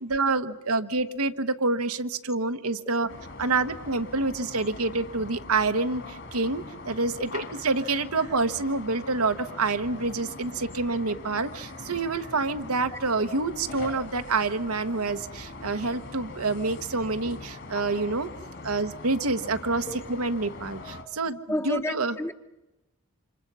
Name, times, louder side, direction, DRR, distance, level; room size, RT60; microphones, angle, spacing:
voice 1, 0.0-3.1 3.4-18.3 18.6-21.4 21.6-22.2, right 3 dB, 90° right, 1.2 m, -27 dB
sound 1, 3.1-21.0, left 2 dB, 55° left, 2.5 m, -42 dB
voice 2, 21.5-22.3, left 1 dB, 10° left, 0.8 m, -31 dB
28.5 x 26.5 x 5.5 m
head